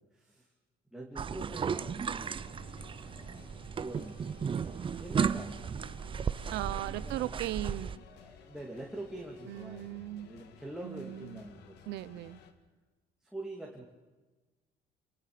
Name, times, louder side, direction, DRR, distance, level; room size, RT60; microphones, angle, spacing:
voice 1, 0.1-0.5 0.9-2.9 3.2-3.4 3.8-4.4 5.0-5.7 6.9-7.3 8.1-11.9 13.2-13.8, right 1 dB, 5° right, -2 dB, 3.0 m, -45 dB
sound 1, 1.1-8.0, right 6 dB, 30° right, 0.7 m, -35 dB
sound 2, 1.6-12.5, left 8 dB, 90° left, 1.9 m, -57 dB
voice 2, 6.5-8.0 9.5-10.3 10.8-11.4 11.9-12.4, right 14 dB, 85° right, 15 dB, 1.0 m, -38 dB
28.0 x 19.0 x 5.2 m, 1.2 s
cardioid pair, 110°, 17 cm